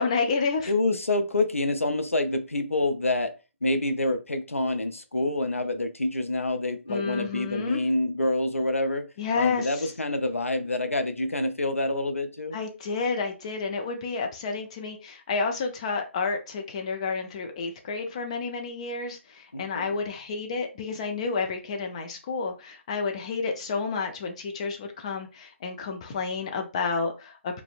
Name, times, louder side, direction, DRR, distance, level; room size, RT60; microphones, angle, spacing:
voice 1, 0.0-0.7 6.9-7.8 9.2-9.9 12.5-27.6, left 4 dB, 25° left, 0.4 m, -30 dB
voice 2, 0.7-3.3 3.6-9.1 9.4-12.6 19.5-19.9, left 2 dB, 90° left, 0.4 m, -27 dB
2.5 x 2.1 x 2.4 m
figure-of-eight pair, 150°, 7 cm